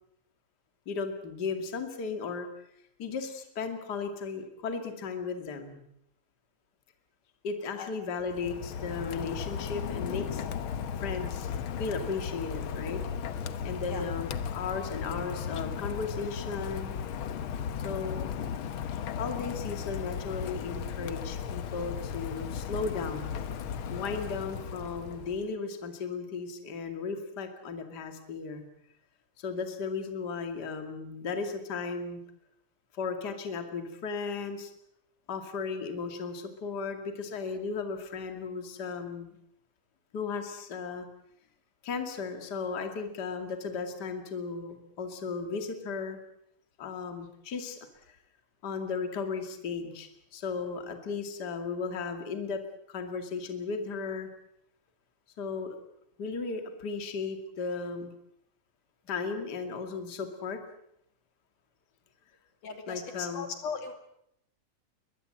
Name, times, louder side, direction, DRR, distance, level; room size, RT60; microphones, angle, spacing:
voice 1, 0.9-2.5 3.0-5.8 7.4-10.4 11.0-11.5 11.8-13.0 13.6-17.0 17.8-18.4 19.1-23.3 23.9-28.7 29.4-32.2 32.9-34.7 35.3-39.4 40.1-41.1 41.8-46.2 46.8-47.8 48.6-52.6 52.9-54.3 55.4-55.7 56.2-58.1 59.1-60.6 62.9-63.5, left 5 dB, 35° left, 6 dB, 2.5 m, -35 dB
Rain, 8.2-25.5, left 7 dB, 65° left, 1.4 m, -36 dB
voice 2, 62.6-63.9, left 6 dB, 80° left, 7 dB, 4.0 m, -38 dB
22.0 x 21.5 x 7.8 m, 0.76 s
omnidirectional pair, 3.5 m